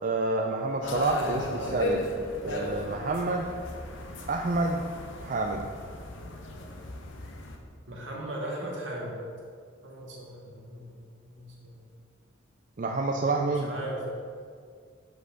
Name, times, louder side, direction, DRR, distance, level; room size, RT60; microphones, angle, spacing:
voice 1, 0.0-2.0 2.4-3.5 4.3-4.8 5.2-5.7 12.8-13.7, right 3 dB, 40° right, 1 dB, 0.4 m, -28 dB
sound 1, 0.8-7.6, left 1 dB, 70° left, 0.9 m, -36 dB
voice 2, 1.2-1.7 7.9-9.2 9.8-11.8 13.5-14.1, right 1 dB, 70° right, -3 dB, 1.9 m, -38 dB
6.0 x 5.5 x 6.4 m, 2.1 s
head